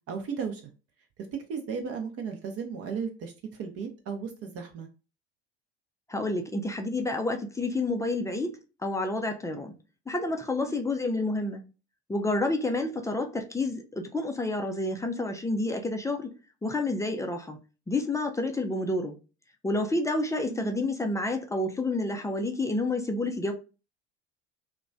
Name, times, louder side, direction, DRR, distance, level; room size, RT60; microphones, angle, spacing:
voice 1, 0.1-0.6 1.5-4.9 10.6-10.8 20.5-20.8, right 6 dB, 45° right, 0.6 m, -35 dB
voice 2, 6.1-9.7 10.1-11.6 12.1-16.3 16.6-17.6 17.9-19.2 19.6-23.5, left 2 dB, 10° left, 0.4 m, -29 dB
2.9 x 2.2 x 2.5 m
hypercardioid pair, 65°, 33 cm